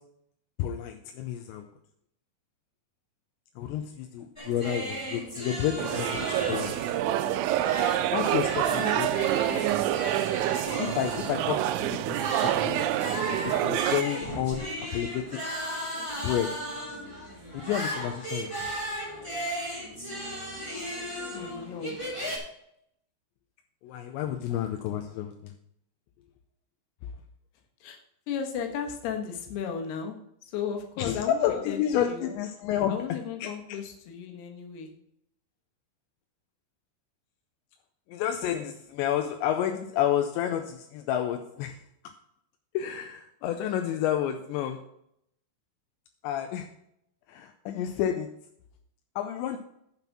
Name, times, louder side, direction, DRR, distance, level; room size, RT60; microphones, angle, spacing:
voice 1, 0.6-1.7 3.6-6.7 8.1-9.1 9.6-9.8 10.8-12.8 13.4-15.4 16.2-16.5 17.5-18.7 23.8-25.5 31.0-33.0 33.4-33.8 38.1-41.8 42.7-44.8 46.2-46.7 47.3-48.3 49.2-49.6, left 10 dB, 85° left, 5 dB, 2.8 m, -30 dB
sound 1, 4.4-22.4, equal, 15° left, 1.1 m, -36 dB
sound 2, 5.8-14.0, right 13 dB, 90° right, 3.0 m, -27 dB
voice 2, 8.7-9.6 21.3-22.0 27.8-28.0 28.3-32.3 32.9-34.9, left 7 dB, 70° left, 3 dB, 3.1 m, -35 dB
9.0 x 5.9 x 6.0 m, 0.74 s
omnidirectional pair, 5.3 m